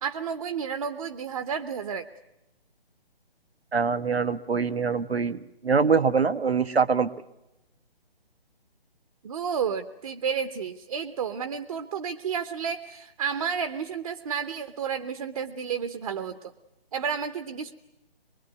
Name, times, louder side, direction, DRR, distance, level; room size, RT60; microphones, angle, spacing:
voice 1, 0.0-2.1 9.2-16.5 16.9-17.7, right 7 dB, 35° right, 10 dB, 0.9 m, -31 dB
voice 2, 3.7-7.1, right 5 dB, 90° right, 11 dB, 1.2 m, -24 dB
24.0 x 23.0 x 9.4 m, 0.94 s
figure-of-eight pair, 155°, 30 cm